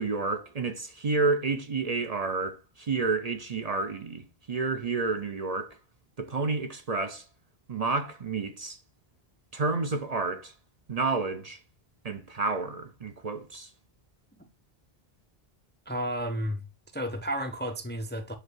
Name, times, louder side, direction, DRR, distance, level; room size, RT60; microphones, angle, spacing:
voice 1, 0.0-5.8 6.2-7.3 7.7-8.8 9.5-10.5 10.9-11.6 12.0-13.7, right 3 dB, 45° right, 0.7 m, -30 dB
voice 2, 15.9-16.6 16.9-18.4, equal, 15° left, 0.5 m, -32 dB
8.0 x 2.8 x 6.1 m
omnidirectional pair, 1.0 m